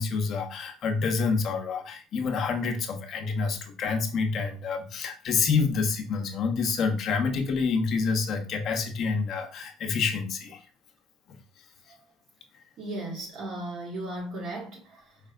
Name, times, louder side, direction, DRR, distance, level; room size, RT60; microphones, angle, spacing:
voice 1, 0.0-10.6 11.3-11.4, left 5 dB, 50° left, 0.8 m, -28 dB
voice 2, 12.8-15.0, right 1 dB, 55° right, 1.6 m, -36 dB
5.0 x 3.3 x 2.5 m
cardioid pair, 115°, 0 cm